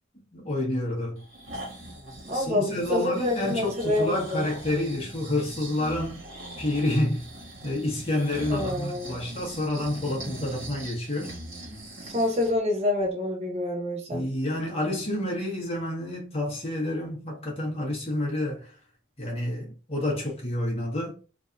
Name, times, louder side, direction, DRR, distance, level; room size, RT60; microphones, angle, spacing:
voice 1, 0.3-1.2 2.3-6.3 6.6-7.2 7.6-11.3 14.1-18.7 19.2-21.1, left 1 dB, 30° left, 1.4 m, -29 dB
Breathing, 1.2-12.6 13.0-13.1, right 1 dB, 75° right, 1.8 m, -41 dB
voice 2, 2.3-4.4 8.5-9.1 12.0-14.2, left 2 dB, 30° right, 0.8 m, -27 dB
3.8 x 2.8 x 2.6 m
head